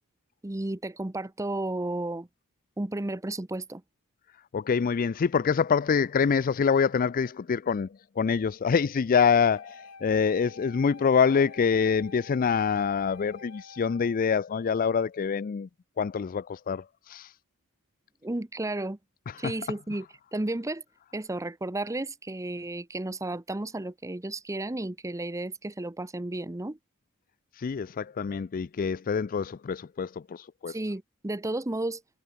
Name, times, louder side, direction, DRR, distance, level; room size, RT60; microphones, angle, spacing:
voice 1, 0.4-2.3 2.8-3.8 18.2-19.0 19.4-20.1 20.3-20.8 21.1-26.8 30.7-32.0, right 2 dB, 15° right, 0.7 m, -33 dB
voice 2, 4.5-7.9 8.2-15.7 16.0-17.3 27.6-30.7, left 6 dB, 40° left, 0.4 m, -25 dB
Wind instrument woodwind instrument, 9.3-14.2, left 4 dB, 75° left, 7.1 m, -49 dB
head